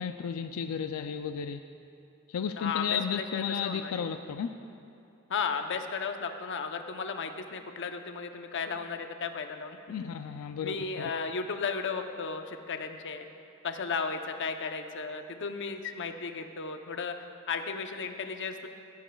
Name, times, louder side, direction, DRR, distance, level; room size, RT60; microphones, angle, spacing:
voice 1, 0.0-1.6 2.3-4.5 9.9-10.8, left 7 dB, 90° left, 8 dB, 0.4 m, -33 dB
voice 2, 2.6-4.0 5.3-9.8 10.6-13.2 13.6-17.2 17.5-18.7, left 5 dB, 60° left, 6 dB, 0.7 m, -34 dB
16.0 x 15.5 x 2.3 m, 2.8 s
head